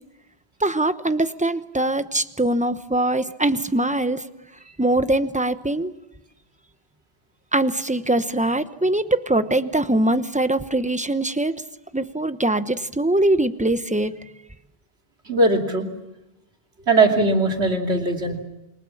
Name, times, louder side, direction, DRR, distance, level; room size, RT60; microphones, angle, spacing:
voice 1, 0.6-4.2 4.8-5.9 7.5-11.6 11.9-14.2, right 1 dB, 5° right, 11 dB, 0.9 m, -22 dB
voice 2, 15.2-15.9 16.9-18.4, right 2 dB, 80° right, 2 dB, 3.2 m, -19 dB
29.0 x 23.0 x 7.2 m, 0.97 s
omnidirectional pair, 1.1 m